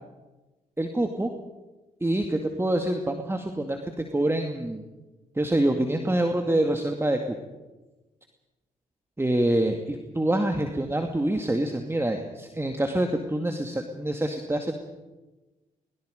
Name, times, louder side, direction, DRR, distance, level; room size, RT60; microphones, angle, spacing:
voice 1, 0.8-1.3 2.0-3.8 4.1-4.8 5.4-7.4 9.2-14.7, right 1 dB, 15° right, 4 dB, 2.2 m, -26 dB
23.0 x 22.0 x 5.3 m, 1.2 s
hypercardioid pair, 45°, 16 cm